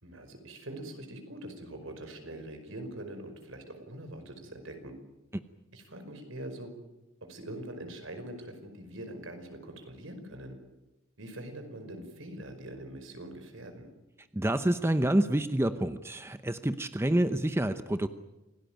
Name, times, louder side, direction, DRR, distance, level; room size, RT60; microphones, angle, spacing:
voice 1, 0.0-4.9 5.7-6.7 7.2-10.6 11.2-13.9, right 1 dB, 65° right, 7 dB, 5.3 m, -43 dB
voice 2, 14.3-18.1, right 1 dB, 10° right, 10 dB, 0.8 m, -27 dB
27.5 x 18.0 x 9.1 m, 1.0 s
head